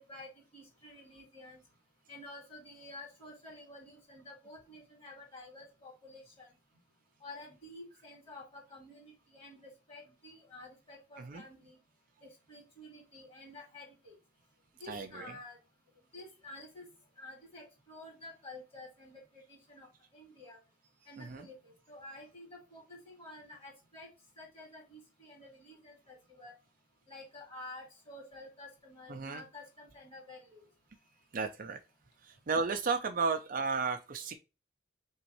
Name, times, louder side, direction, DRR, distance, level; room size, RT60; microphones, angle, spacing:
voice 1, 0.0-1.6 2.1-6.5 7.2-11.8 12.2-14.2 14.8-15.6 16.1-16.8 17.2-19.9 20.1-20.6 21.1-24.1 24.4-26.5 27.1-30.7, left 2 dB, 30° left, 1.9 m, -50 dB
voice 2, 14.9-15.2 21.2-21.5 29.1-29.4 31.3-31.8 32.2-34.3, right 4 dB, 45° right, 0.5 m, -33 dB
3.6 x 3.0 x 2.9 m
head